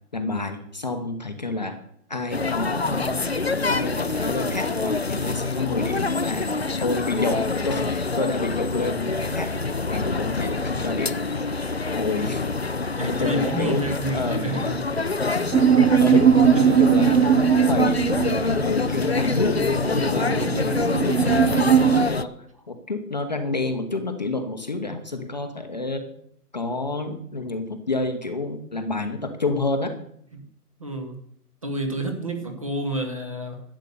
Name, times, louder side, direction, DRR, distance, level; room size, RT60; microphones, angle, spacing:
voice 1, 0.1-1.8 2.1-3.2 3.7-6.5 6.8-9.5 9.9-11.2 11.9-12.5 13.1-13.8 14.1-14.4 15.3-15.5 15.8-16.4 16.7-17.2 17.7-19.6 19.9-22.3 22.7-26.0 26.5-29.9, left 3 dB, 25° left, 6 dB, 0.9 m, -29 dB
sound 1, 2.3-22.2, left 3 dB, 45° left, 0.4 m, -26 dB
voice 2, 12.8-14.8 16.5-16.8 30.8-31.2 31.6-33.6, right 1 dB, 20° right, 6 dB, 0.9 m, -29 dB
sound 2, 15.5-22.0, right 9 dB, 70° right, 0.8 m, -20 dB
12.5 x 8.3 x 6.8 m, 0.68 s
hypercardioid pair, 170°, 47 cm